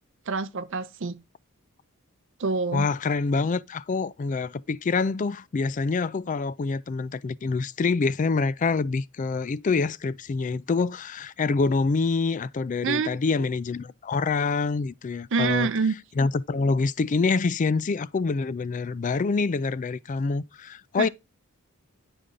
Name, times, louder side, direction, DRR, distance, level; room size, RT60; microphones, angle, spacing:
voice 1, 0.3-1.2 2.4-2.9 12.8-13.1 15.3-15.9 21.0-21.1, right 4 dB, 60° right, 0.6 m, -26 dB
voice 2, 2.7-15.7 16.2-21.1, left 4 dB, 35° left, 0.3 m, -26 dB
9.8 x 5.2 x 3.7 m
head